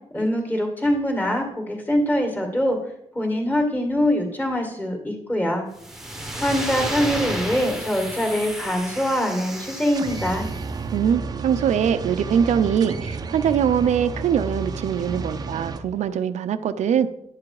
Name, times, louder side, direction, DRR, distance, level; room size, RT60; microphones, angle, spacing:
voice 1, 0.1-2.8 3.1-5.7 6.4-10.5, equal, 15° left, 3 dB, 2.0 m, -23 dB
sound 1, 5.8-10.7, right 1 dB, 5° right, 1.2 m, -32 dB
sound 2, 9.9-15.8, right 4 dB, 35° right, 0.6 m, -31 dB
voice 2, 10.9-17.1, right 8 dB, 80° right, 10 dB, 0.6 m, -22 dB
10.5 x 8.5 x 4.8 m, 0.78 s
wide cardioid pair, 175°, 12 cm